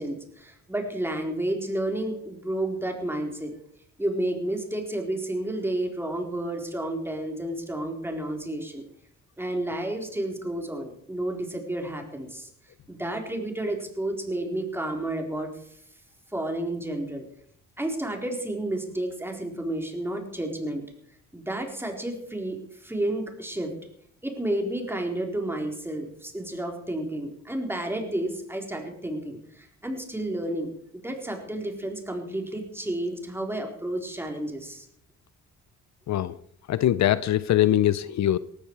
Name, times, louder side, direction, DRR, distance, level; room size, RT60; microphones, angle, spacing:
voice 1, 0.0-3.5 4.0-8.8 9.4-12.5 12.9-15.5 16.3-17.2 17.8-20.8 21.3-23.7 24.2-34.9, right 1 dB, 10° right, 2 dB, 4.1 m, -31 dB
voice 2, 36.1-36.4 36.7-38.4, left 12 dB, 65° left, 16 dB, 0.7 m, -22 dB
18.0 x 15.0 x 4.8 m, 0.68 s
cardioid pair, 90°, 30 cm